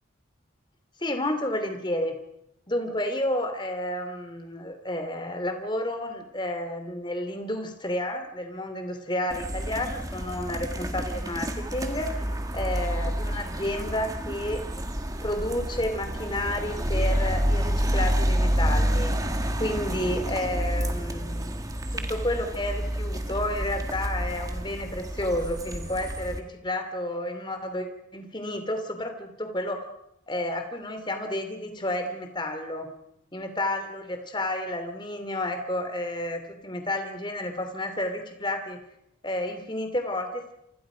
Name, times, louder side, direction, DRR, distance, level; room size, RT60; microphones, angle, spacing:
voice 1, 1.0-2.2 2.7-12.3 12.5-14.6 15.2-19.1 19.6-27.9 28.1-29.8 30.3-32.9 33.3-38.8 39.2-40.5, left 1 dB, 25° left, 6 dB, 2.8 m, -31 dB
sound 1, 9.3-26.4, equal, 20° right, 1.8 m, -29 dB
28.5 x 25.5 x 5.1 m, 0.83 s
head